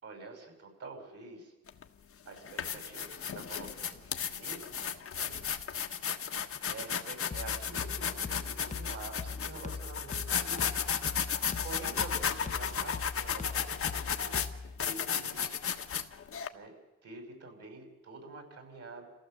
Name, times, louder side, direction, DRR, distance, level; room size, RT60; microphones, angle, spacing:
voice 1, 0.0-1.5 2.2-5.6 6.7-10.7 11.6-14.4 14.8-15.6 16.5-16.7 17.0-19.1, right 3 dB, 55° right, 5 dB, 5.9 m, -47 dB
sound 1, 1.7-1.8 2.4-16.5, left 7 dB, 50° left, 1.5 m, -34 dB
sound 2, 7.3-14.8, left 4 dB, 25° left, 1.0 m, -42 dB
27.5 x 15.5 x 7.8 m, 1.1 s
cardioid pair, 90°, 30 cm